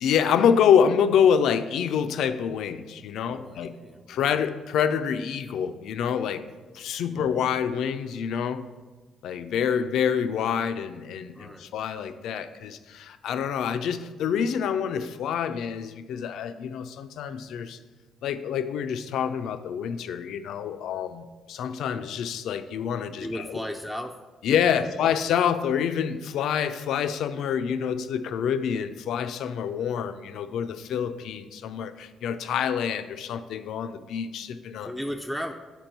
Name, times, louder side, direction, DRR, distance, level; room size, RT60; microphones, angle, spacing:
voice 1, 0.0-3.7 4.1-6.4 6.7-8.7 9.2-17.8 18.2-23.6 24.4-34.9, left 8 dB, 80° left, 11 dB, 0.3 m, -26 dB
voice 2, 3.2-4.3 7.1-7.4 11.4-11.7 23.2-24.2 24.7-25.0 34.8-35.5, equal, ahead, 3 dB, 0.3 m, -36 dB
4.5 x 4.4 x 5.2 m, 1.2 s
cardioid pair, 90°, 0 cm